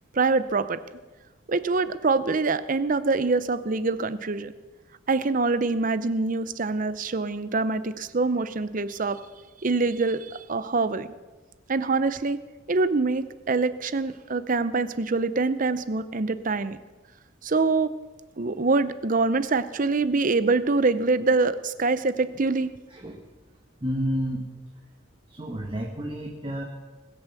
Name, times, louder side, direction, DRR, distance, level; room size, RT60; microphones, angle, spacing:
voice 1, 0.1-0.8 1.5-4.5 5.1-9.2 9.6-11.1 11.7-12.4 12.7-16.8 17.4-17.9 18.4-22.7, right 3 dB, 40° right, 13 dB, 0.6 m, -25 dB
voice 2, 23.8-24.4 25.3-26.6, equal, 25° right, 0 dB, 1.3 m, -30 dB
21.0 x 7.0 x 6.8 m, 1.2 s
head